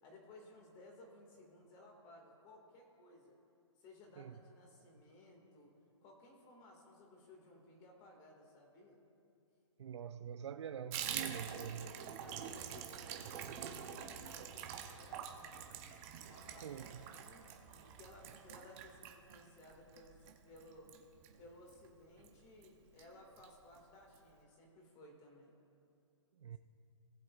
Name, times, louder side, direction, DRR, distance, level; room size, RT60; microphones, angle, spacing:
voice 1, 0.0-3.4 3.8-5.7 6.0-9.0 11.4-15.8 16.2-17.5 17.8-20.9 21.4-25.5, left 2 dB, 25° left, 0 dB, 2.1 m, -59 dB
voice 2, 9.8-11.9 16.6-17.0 26.4-26.6, right 8 dB, 60° right, 10 dB, 0.5 m, -45 dB
Water tap faucet / Bathtub (filling or washing), 10.9-21.9 22.2-22.3 22.6-22.7 23.0-23.5 23.7-23.8 24.1-24.2, right 9 dB, 25° right, 0.7 m, -46 dB
18.5 x 7.6 x 2.5 m, 2.6 s
hypercardioid pair, 150°, 16 cm